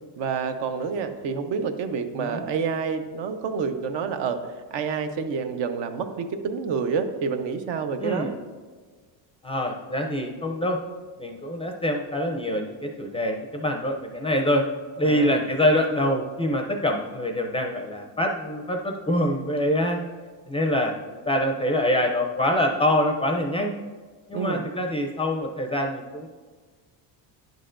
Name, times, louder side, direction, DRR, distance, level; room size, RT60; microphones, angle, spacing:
voice 1, 0.2-4.4 4.7-8.3 15.0-15.5 24.3-24.6, right 5 dB, 70° right, 7 dB, 0.8 m, -28 dB
voice 2, 8.0-8.3 9.4-10.8 11.2-14.7 15.0-20.0 20.5-23.7 24.3-26.3, left 1 dB, 15° left, 3 dB, 0.4 m, -25 dB
10.5 x 6.6 x 2.5 m, 1.5 s
cardioid pair, 135°, 46 cm